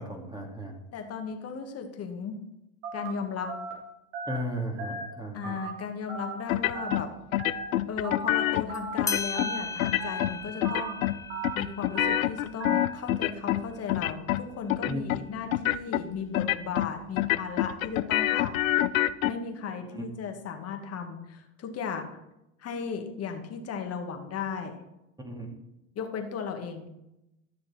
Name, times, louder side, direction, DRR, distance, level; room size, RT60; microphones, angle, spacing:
voice 1, 0.0-0.8 4.3-5.6 14.8-15.0 19.9-20.1 25.2-25.6, equal, 10° right, 1 dB, 2.2 m, -35 dB
voice 2, 0.9-2.4 2.9-3.5 5.3-7.1 7.9-11.0 11.5-18.6 19.2-22.2 22.6-24.8 26.0-26.9, left 6 dB, 40° left, 4 dB, 2.0 m, -36 dB
Telephone, 2.8-3.1 3.5-3.7 4.1-4.4 4.8-5.0 5.4-5.7 6.1-6.3 6.7-7.0 7.4-7.6 8.0-8.3 8.7-8.9 9.3-9.6 10.0-10.2 10.6-10.9 11.3-11.5 12.0-12.2 12.6-12.8, right 4 dB, 65° right, 3.3 m, -36 dB
sound 1, 6.5-7.0 7.3-8.7 9.0-9.5 9.8-10.3 10.6-11.2 11.4-13.6 13.9-14.4 14.7-15.2 15.5-16.0 16.3-16.9 17.2-19.3, left 14 dB, 85° left, 0.6 m, -26 dB
sound 2, 8.7-8.8 9.1-14.2, left 4 dB, 10° left, 0.4 m, -38 dB
13.0 x 6.5 x 4.3 m, 0.88 s
hypercardioid pair, 90°, 40 cm